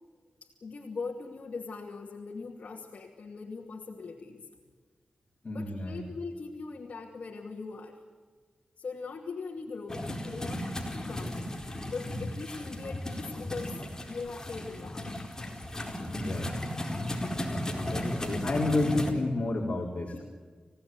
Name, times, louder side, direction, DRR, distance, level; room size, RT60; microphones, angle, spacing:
voice 1, 0.4-4.5 5.5-8.0 8.8-11.4 11.9-13.8 14.1-15.1 20.1-20.2, left 4 dB, 75° left, 0 dB, 2.5 m, -40 dB
voice 2, 5.4-6.1 12.1-12.2 16.1-16.7 17.5-20.2, left 2 dB, 55° left, -1 dB, 4.3 m, -31 dB
sound 1, 9.9-19.1, left 1 dB, 25° left, 4.5 m, -35 dB
28.0 x 17.0 x 9.6 m, 1.5 s
cardioid pair, 60°, 3 cm